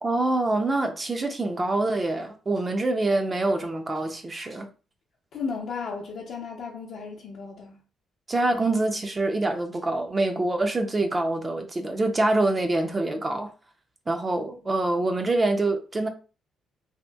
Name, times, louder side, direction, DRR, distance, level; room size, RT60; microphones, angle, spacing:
voice 1, 0.0-4.7 8.3-13.5 14.1-16.1, right 2 dB, 25° right, 0.5 m, -25 dB
voice 2, 5.3-7.8, left 5 dB, 70° left, 0.5 m, -34 dB
2.8 x 2.4 x 2.2 m
cardioid pair, 90°, 0 cm